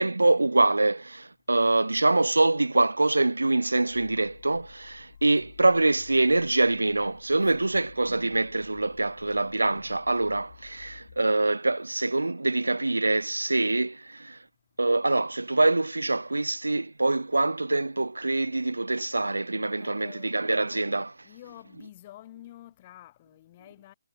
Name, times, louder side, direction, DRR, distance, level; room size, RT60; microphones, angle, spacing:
voice 1, 0.0-14.4 14.8-21.2, right 2 dB, 85° right, 0.5 m, -25 dB
sound 1, 3.9-11.2, left 6 dB, 50° left, 2.1 m, -52 dB
voice 2, 19.8-20.4 21.2-23.9, left 14 dB, 30° left, 4.1 m, -49 dB
figure-of-eight pair, 150°, 0 cm